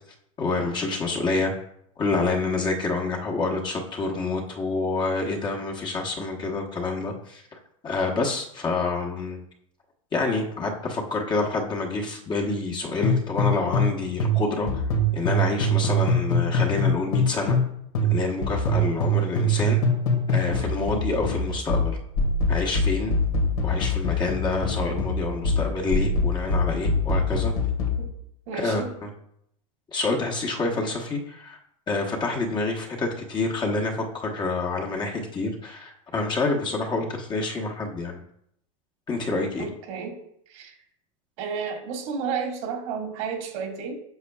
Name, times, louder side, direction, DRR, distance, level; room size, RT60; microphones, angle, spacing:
voice 1, 0.4-1.5 2.0-7.4 7.8-9.4 10.1-14.7 15.1-17.6 18.0-19.8 20.3-21.9 22.5-23.1 23.6-27.5 28.5-29.1 29.9-31.6 31.9-38.2 39.1-39.7, left 3 dB, 25° left, 0 dB, 1.1 m, -27 dB
sound 1, 13.0-13.9 14.2-17.7 17.9-28.0, left 1 dB, 90° left, 1.9 m, -23 dB
voice 2, 28.5-28.9 39.6-40.2 40.5-40.8 41.4-44.0, right 6 dB, 65° right, 2 dB, 1.9 m, -32 dB
8.0 x 6.0 x 2.3 m, 0.73 s
supercardioid pair, 125°, 18 cm